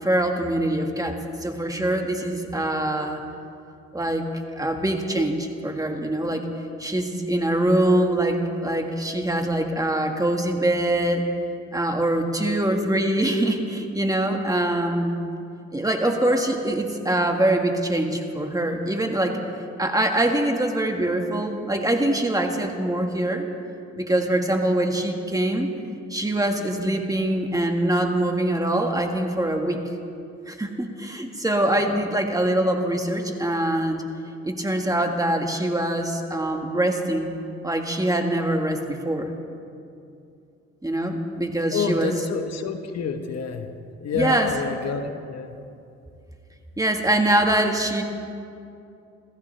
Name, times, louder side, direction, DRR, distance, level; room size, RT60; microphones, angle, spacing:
voice 1, 0.0-3.2 3.9-4.3 4.6-6.4 6.8-11.2 11.7-15.1 15.7-19.4 19.8-23.4 23.9-25.7 26.1-29.8 30.5-34.0 34.4-37.4 37.6-39.3 40.8-42.1 44.1-44.5 46.8-48.0, right 1 dB, 10° right, 3 dB, 1.6 m, -23 dB
voice 2, 41.7-43.7 44.0-45.6, left 6 dB, 60° left, 6 dB, 1.2 m, -28 dB
27.5 x 14.5 x 3.3 m, 2.6 s
cardioid pair, 90°, 30 cm